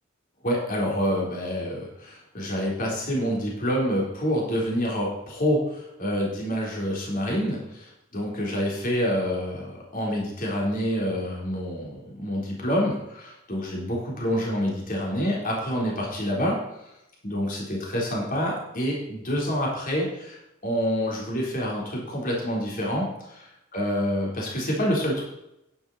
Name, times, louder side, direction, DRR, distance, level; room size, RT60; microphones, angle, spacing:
voice 1, 0.4-16.6 17.2-25.2, equal, 45° left, -3 dB, 3.9 m, -27 dB
11.5 x 10.5 x 4.2 m, 0.85 s
head